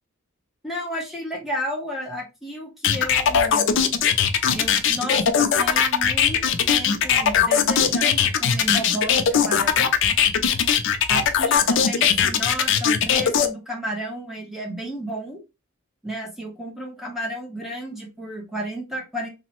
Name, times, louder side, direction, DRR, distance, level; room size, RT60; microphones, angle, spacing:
voice 1, 0.6-3.8 4.5-9.9 11.1-15.4 16.0-19.3, equal, ahead, -2 dB, 0.7 m, -32 dB
sound 1, 2.8-13.5, left 7 dB, 60° left, 0.4 m, -19 dB
2.9 x 2.1 x 2.9 m, 0.26 s
head